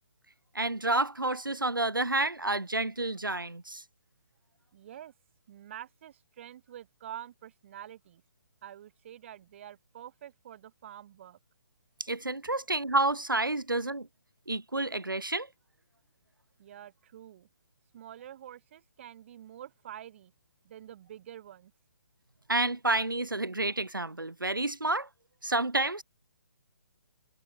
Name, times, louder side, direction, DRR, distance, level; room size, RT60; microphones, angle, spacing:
voice 1, 0.5-3.8 12.0-14.1 14.5-15.5 22.5-25.1 25.4-26.0, right 2 dB, 80° right, 1.9 m, -29 dB
voice 2, 4.7-5.1 5.5-8.2 8.6-11.4 16.6-17.5 17.9-20.3 20.6-21.7, right 11 dB, 35° right, 3.6 m, -47 dB
figure-of-eight pair, 135°, 11 cm